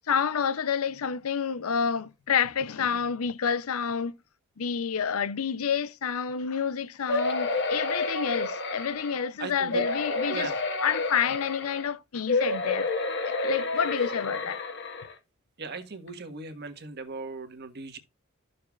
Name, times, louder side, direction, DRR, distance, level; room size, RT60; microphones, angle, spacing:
voice 1, 0.1-4.2 4.6-10.5 10.8-12.9 13.3-14.6, left 7 dB, 80° left, 0.6 m, -29 dB
sound 1, 7.1-9.2 9.7-11.9 12.3-15.1 15.7-15.8 16.1-16.2, left 3 dB, 55° left, 1.6 m, -30 dB
voice 2, 9.4-9.9 10.3-10.6 15.6-18.0, right 4 dB, 50° right, 1.5 m, -38 dB
13.0 x 6.8 x 2.4 m
head